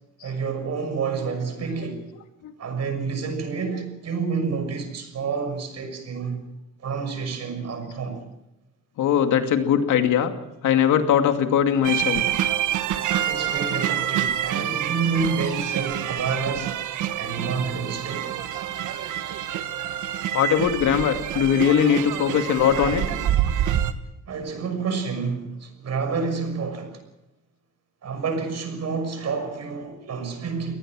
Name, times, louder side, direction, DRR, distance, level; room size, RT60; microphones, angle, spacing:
voice 1, 0.2-2.1 2.6-6.4 6.8-8.2 13.2-16.8 17.2-18.3 23.1-23.2 24.3-27.0 28.0-30.8, right 5 dB, 60° right, 6.2 m, -29 dB
voice 2, 9.0-10.3 10.6-12.2 20.3-23.0, left 8 dB, 80° left, 2.6 m, -20 dB
sound 1, 11.8-23.9, right 11 dB, 80° right, 1.5 m, -27 dB
24.0 x 19.0 x 6.3 m
cardioid pair, 90°, 30 cm